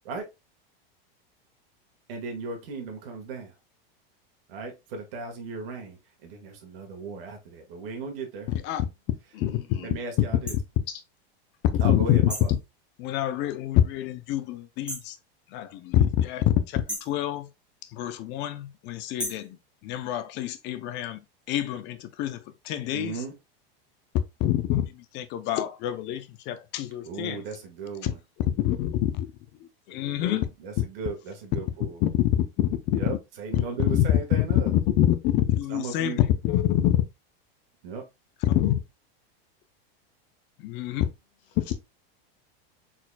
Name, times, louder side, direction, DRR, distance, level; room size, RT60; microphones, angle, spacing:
voice 1, 2.1-3.5 4.5-8.5 9.8-10.6 11.8-12.5 22.9-23.3 27.0-28.2 30.6-32.0 32.9-34.7 35.7-36.2 37.8-38.0, right 4 dB, 70° right, 1.6 m, -36 dB
voice 2, 9.3-9.9 29.9-30.4 33.6-33.7, left 7 dB, 65° left, 1.3 m, -40 dB
sound 1, 10.5-10.6 12.3-12.6 14.9-15.2 16.9-17.2 19.2-19.5, equal, 5° right, 1.3 m, -35 dB
voice 3, 11.7-12.3 13.0-15.2 15.5-17.5 17.9-19.6 19.8-21.2 21.5-22.4 22.6-23.2 24.4-27.4 28.0-28.1 28.6-29.3 29.9-30.4 32.0-32.3 32.6-33.2 33.9-34.0 34.7-36.2 36.4-37.0 38.5-38.8 40.6-41.0, left 12 dB, 40° left, 0.6 m, -26 dB
4.4 x 4.3 x 2.2 m
supercardioid pair, 145°, 30 cm